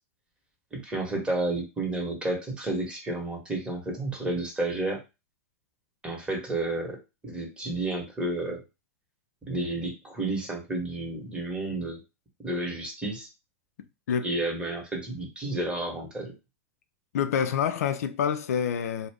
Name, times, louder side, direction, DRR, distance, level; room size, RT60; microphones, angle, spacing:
voice 1, 0.7-5.0 6.0-8.6 9.4-12.0 12.4-13.3 14.2-16.3, right 2 dB, 10° right, 1.1 m, -31 dB
voice 2, 17.1-19.1, left 8 dB, 70° left, 0.4 m, -27 dB
2.5 x 2.1 x 3.4 m
hypercardioid pair, 110°, 9 cm